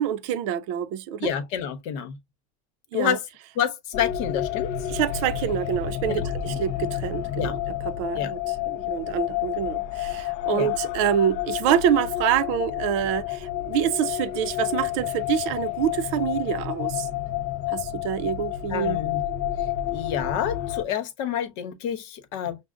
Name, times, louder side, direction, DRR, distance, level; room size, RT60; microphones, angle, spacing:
voice 1, 0.0-1.3 2.9-3.2 4.9-17.1 17.7-19.0, right 9 dB, 60° right, 0.5 m, -26 dB
voice 2, 1.2-2.2 2.9-3.2 3.5-4.7 6.1-6.6 7.3-7.5 8.2-8.3 10.5-10.7 18.7-19.2 19.9-22.6, left 9 dB, 60° left, 1.0 m, -28 dB
sound 1, 3.9-20.8, left 12 dB, 45° left, 0.4 m, -30 dB
6.1 x 2.1 x 2.4 m
supercardioid pair, 135°, 17 cm